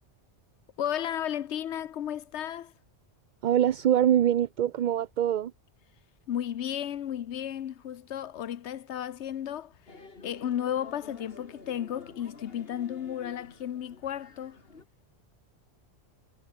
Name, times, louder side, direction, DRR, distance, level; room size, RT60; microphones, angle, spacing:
voice 1, 0.8-2.7 6.3-9.7 10.2-14.6, left 10 dB, 85° left, 1.1 m, -33 dB
voice 2, 3.4-5.5, right 10 dB, 55° right, 0.6 m, -24 dB
sound 1, 9.9-14.9, left 3 dB, 60° left, 2.9 m, -50 dB
omnidirectional pair, 1.1 m